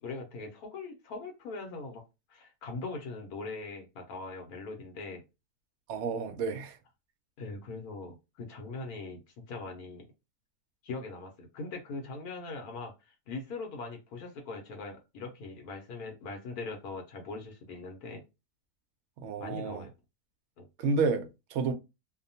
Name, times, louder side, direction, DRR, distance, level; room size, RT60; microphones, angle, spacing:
voice 1, 0.0-2.0 2.3-5.2 7.4-10.1 10.8-18.2 19.4-19.9 20.6-20.7, left 3 dB, 80° left, 1.2 m, -41 dB
voice 2, 5.9-6.8 19.2-19.9 20.8-21.7, right 4 dB, 65° right, 0.7 m, -30 dB
2.8 x 2.1 x 2.7 m
omnidirectional pair, 1.6 m